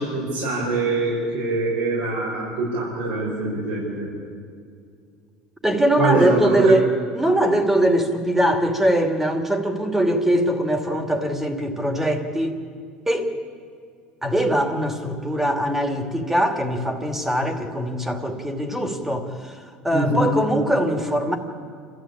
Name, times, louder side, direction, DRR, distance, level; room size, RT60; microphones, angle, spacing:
voice 1, 0.0-4.1 6.0-6.7 19.9-20.3, right 2 dB, 75° right, -5 dB, 6.9 m, -23 dB
voice 2, 5.6-12.6 13.1-13.3 14.2-19.6 19.8-21.4, right 1 dB, 10° right, 5 dB, 2.7 m, -22 dB
28.5 x 14.0 x 8.8 m, 2.3 s
supercardioid pair, 105°, 4 cm